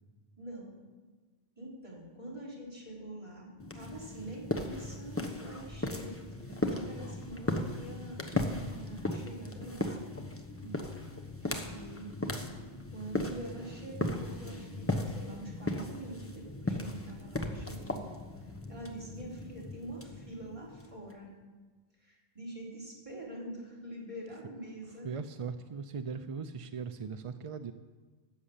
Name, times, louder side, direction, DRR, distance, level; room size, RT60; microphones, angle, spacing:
voice 1, 0.4-0.8 1.6-10.0 11.4-12.4 12.9-18.0 18.4-21.3 22.0-25.1, right 1 dB, 30° right, -5 dB, 3.8 m, -45 dB
sound 1, 3.6-21.1, left 1 dB, 15° left, 1.0 m, -37 dB
voice 2, 25.0-27.7, right 5 dB, 50° right, 10 dB, 0.4 m, -39 dB
13.0 x 7.4 x 8.5 m, 1.3 s
omnidirectional pair, 1.1 m